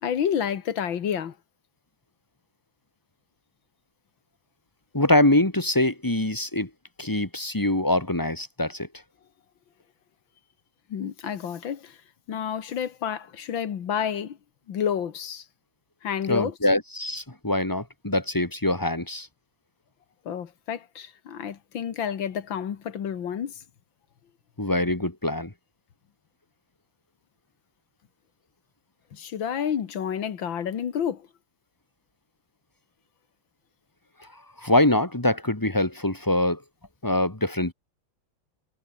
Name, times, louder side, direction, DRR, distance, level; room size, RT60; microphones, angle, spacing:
voice 1, 0.0-1.4 10.9-12.0 12.3-14.4 14.7-15.5 16.0-16.5 20.3-23.6 29.1-31.3, left 8 dB, 90° left, 2.3 m, -29 dB
voice 2, 4.9-6.7 7.0-8.9 16.3-19.3 24.6-25.5 34.2-34.3 34.6-36.6 37.0-37.7, left 1 dB, 10° left, 1.8 m, -24 dB
omnidirectional pair, 2.1 m